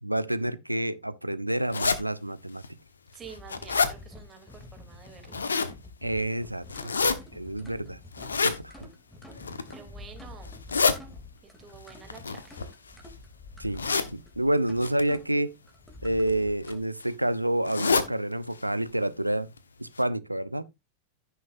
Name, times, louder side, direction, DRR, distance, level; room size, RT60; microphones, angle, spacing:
voice 1, 0.0-2.6 6.0-6.9 7.3-8.0 8.4-8.9 13.6-13.8 14.1-15.5 16.0-19.5 19.8-20.6, right 1 dB, 85° right, 0.6 m, -28 dB
sound 1, 1.7-2.0 2.6-2.7 3.2-3.9 5.1-5.7 6.7-7.1 8.1-8.6 9.3-9.7 10.4-11.0 12.1-13.1 13.8-14.1 14.8-15.0 16.0-16.3 16.6-16.7 17.0-17.1 17.6-18.1 18.5-18.6 18.9-19.0 19.6-19.7 20.0-20.1, left 4 dB, 75° left, 1.0 m, -27 dB
voice 2, 3.1-5.4 9.7-10.5 11.4-12.6, right 6 dB, 20° right, 2.9 m, -49 dB
sound 2, 3.2-16.8, left 2 dB, 10° left, 2.8 m, -48 dB
15.5 x 6.3 x 2.6 m
figure-of-eight pair, 90°, 0 cm